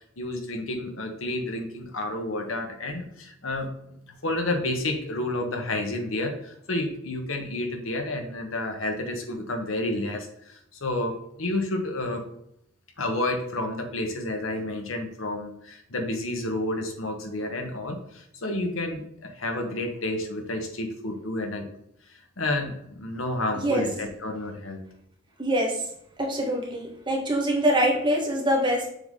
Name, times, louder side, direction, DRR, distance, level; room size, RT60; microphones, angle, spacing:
voice 1, 0.2-4.0 4.2-12.3 13.0-21.7 22.1-24.8, left 1 dB, 85° left, 4 dB, 1.2 m, -30 dB
voice 2, 25.4-25.7 26.2-28.9, equal, 25° right, -1 dB, 1.4 m, -24 dB
6.9 x 3.8 x 3.7 m, 0.75 s
head